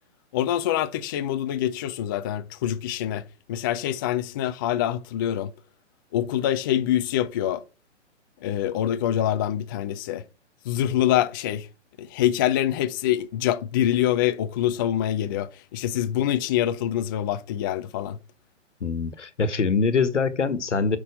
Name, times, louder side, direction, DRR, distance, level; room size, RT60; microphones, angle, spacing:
voice 1, 0.3-5.5 6.1-7.6 8.4-10.2 10.7-11.7 12.0-18.2, left 11 dB, 20° left, 0.4 m, -25 dB
voice 2, 18.8-21.0, left 5 dB, 80° left, 1.4 m, -24 dB
8.3 x 6.1 x 5.0 m
figure-of-eight pair, 125°, 36 cm